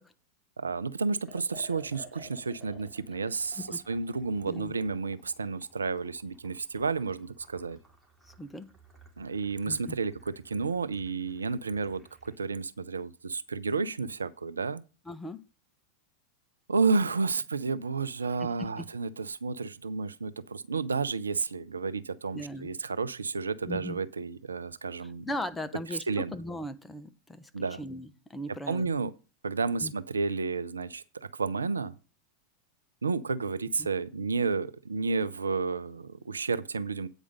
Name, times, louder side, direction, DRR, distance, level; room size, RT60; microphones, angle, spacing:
voice 1, 0.6-7.8 9.2-14.8 16.7-25.3 26.1-26.3 27.5-27.8 28.7-29.1 29.4-31.9 33.0-37.1, right 4 dB, 85° right, 0.5 m, -31 dB
Liquid, 1.2-12.4, right 1 dB, 5° right, 2.4 m, -55 dB
voice 2, 8.4-8.7 9.7-10.0 15.1-15.4 18.4-18.9 22.3-22.7 23.7-24.0 25.2-26.0 26.3-27.5 27.8-28.9 29.8-29.9, left 1 dB, 10° left, 0.8 m, -38 dB
8.9 x 5.0 x 6.4 m
hypercardioid pair, 90°, 0 cm